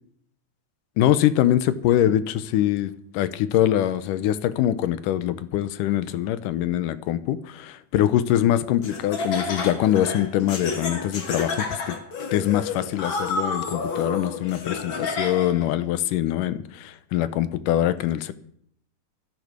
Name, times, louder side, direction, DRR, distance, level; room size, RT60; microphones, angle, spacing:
voice 1, 1.0-12.0 12.3-18.3, left 12 dB, 75° left, 2.3 m, -23 dB
Laughter, 8.8-15.6, left 4 dB, 45° left, 2.0 m, -30 dB
14.0 x 10.5 x 6.6 m
omnidirectional pair, 3.9 m